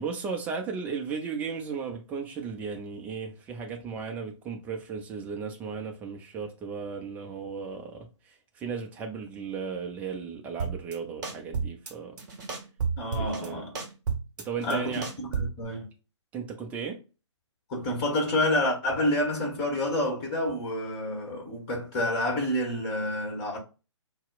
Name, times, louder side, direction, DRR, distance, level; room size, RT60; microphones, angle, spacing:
voice 1, 0.0-12.2 13.1-13.6 14.4-15.1 16.3-17.0, right 5 dB, 10° right, 0.4 m, -35 dB
sound 1, 10.6-10.9 11.2-11.9 12.2-13.5 13.7-15.6, right 5 dB, 40° right, 0.8 m, -31 dB
voice 2, 13.0-13.7 14.6-15.9 17.7-23.6, left 1 dB, 25° left, 1.2 m, -28 dB
4.0 x 2.0 x 2.3 m
figure-of-eight pair, 130°, 15 cm